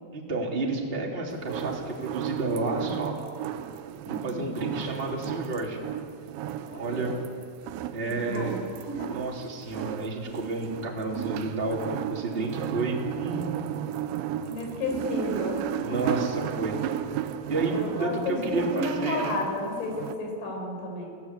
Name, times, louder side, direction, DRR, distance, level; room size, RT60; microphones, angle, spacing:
voice 1, 0.1-3.1 4.2-5.8 6.7-7.2 7.9-8.6 9.1-13.9 15.8-16.8 17.5-19.2, right 2 dB, 15° right, -1 dB, 2.9 m, -31 dB
sound 1, 1.4-20.2, right 11 dB, 80° right, 3.1 m, -34 dB
voice 2, 4.0-4.5 6.7-7.1 8.1-8.6 8.9-9.1 14.4-16.0 17.7-21.1, left 2 dB, 75° left, 1 dB, 7.2 m, -32 dB
26.5 x 18.0 x 8.3 m, 2.2 s
omnidirectional pair, 5.3 m